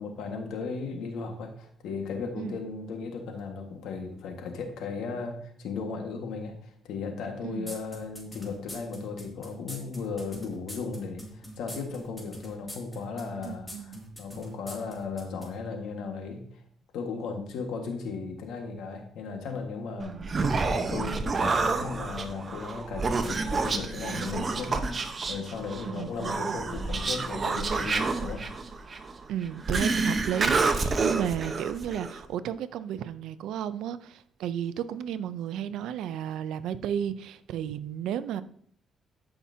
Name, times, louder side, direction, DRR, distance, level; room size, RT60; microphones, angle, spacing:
voice 1, 0.0-16.6 16.9-20.2 20.6-28.4, left 4 dB, 85° left, 1.6 m, -36 dB
voice 2, 7.4-7.8 13.4-14.0 19.9-20.3 25.9-26.4 29.3-38.4, right 9 dB, 85° right, 0.5 m, -33 dB
sound 1, 7.7-15.5, equal, 15° left, 2.4 m, -43 dB
Human voice, 20.0-32.2, right 4 dB, 40° right, 0.9 m, -29 dB
13.0 x 5.8 x 2.8 m
cardioid pair, 90°, 0 cm